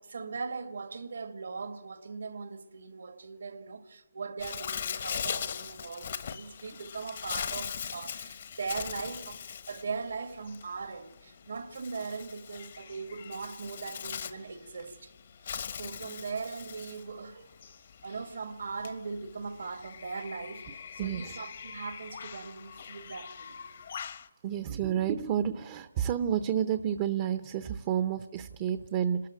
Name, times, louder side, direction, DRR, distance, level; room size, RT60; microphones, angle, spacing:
voice 1, 0.0-15.1 15.4-20.6 20.9-23.7, right 4 dB, 70° right, 1.9 m, -40 dB
Bird, 4.4-24.3, left 7 dB, 50° left, 1.0 m, -41 dB
voice 2, 21.0-21.4 24.4-29.3, right 9 dB, 30° right, 0.7 m, -30 dB
28.5 x 13.5 x 8.9 m
hypercardioid pair, 155°, 0 cm